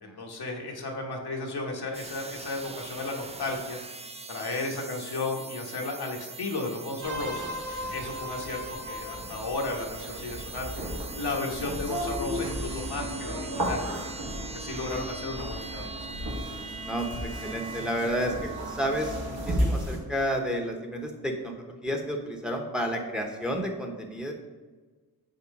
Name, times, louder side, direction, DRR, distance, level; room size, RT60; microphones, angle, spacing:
voice 1, 0.0-3.8 4.3-7.5 7.9-10.7 11.1-13.8 14.5-16.1, left 3 dB, 75° left, 0 dB, 1.2 m, -34 dB
sound 1, 1.9-19.8, right 3 dB, 15° right, 0.4 m, -42 dB
sound 2, 7.0-20.0, equal, 70° right, 1.6 m, -34 dB
sound 3, 12.4-20.5, right 3 dB, 40° right, 1.0 m, -46 dB
voice 2, 16.8-18.3 18.7-24.3, equal, ahead, 3 dB, 0.9 m, -31 dB
5.6 x 4.4 x 5.3 m, 1.4 s
wide cardioid pair, 80°, 39 cm